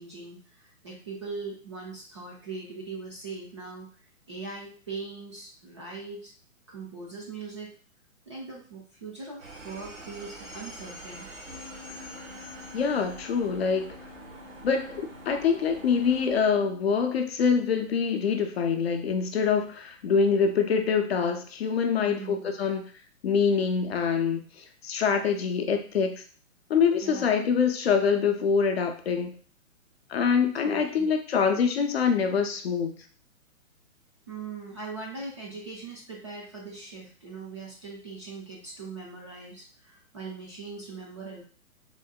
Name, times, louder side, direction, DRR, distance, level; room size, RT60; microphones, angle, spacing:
voice 1, 0.0-3.9 4.3-6.3 6.7-7.8 8.3-11.3 22.0-22.5 27.0-27.3 30.6-31.1 34.3-41.4, right 4 dB, 25° right, -4 dB, 0.4 m, -40 dB
sound 1, 9.4-16.4, right 2 dB, 70° right, 1.1 m, -45 dB
Wind instrument woodwind instrument, 11.5-17.1, left 7 dB, 90° right, 1.3 m, -50 dB
voice 2, 12.7-13.9 14.6-22.8 23.2-26.1 26.7-29.4 30.1-32.9, left 6 dB, 50° left, 5 dB, 0.5 m, -25 dB
3.7 x 2.0 x 2.2 m, 0.41 s
figure-of-eight pair, 130°, 42 cm